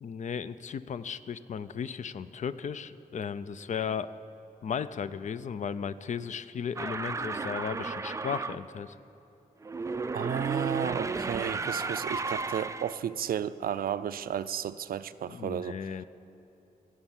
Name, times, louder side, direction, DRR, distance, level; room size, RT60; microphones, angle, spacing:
voice 1, 0.0-4.1 4.6-9.0 15.3-16.0, left 7 dB, 55° left, 14 dB, 0.4 m, -35 dB
sound 1, 6.8-8.6 9.6-13.0, right 4 dB, 20° right, 0.3 m, -33 dB
voice 2, 10.1-15.8, right 9 dB, 90° right, 15 dB, 0.4 m, -33 dB
15.5 x 8.1 x 7.3 m, 3.0 s
wide cardioid pair, 130°, 15 cm